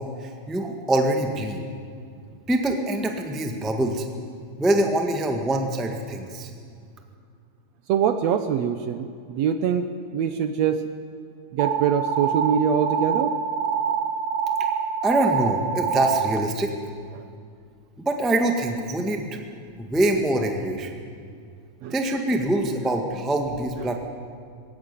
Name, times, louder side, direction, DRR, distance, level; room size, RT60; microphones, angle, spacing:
voice 1, 0.0-1.7 2.5-4.1 4.6-6.5 15.0-16.8 18.0-19.4 19.8-21.0 21.9-24.0, right 1 dB, ahead, 3 dB, 0.8 m, -24 dB
voice 2, 7.9-10.8 11.5-13.4 17.1-17.2 21.8-21.9 23.8-23.9, right 8 dB, 70° right, 9 dB, 1.7 m, -24 dB
sound 1, 11.6-16.4, right 7 dB, 90° right, 2.4 m, -25 dB
21.0 x 16.5 x 9.8 m, 2.3 s
omnidirectional pair, 3.6 m